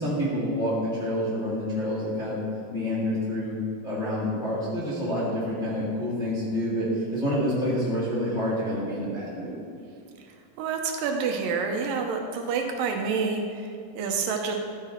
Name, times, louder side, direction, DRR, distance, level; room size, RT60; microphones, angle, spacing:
voice 1, 0.0-2.4 2.7-3.6 3.8-9.6, equal, 25° left, -8 dB, 1.5 m, -28 dB
voice 2, 10.6-14.5, right 5 dB, 80° right, 3 dB, 2.4 m, -28 dB
13.0 x 6.0 x 4.3 m, 2.3 s
omnidirectional pair, 4.0 m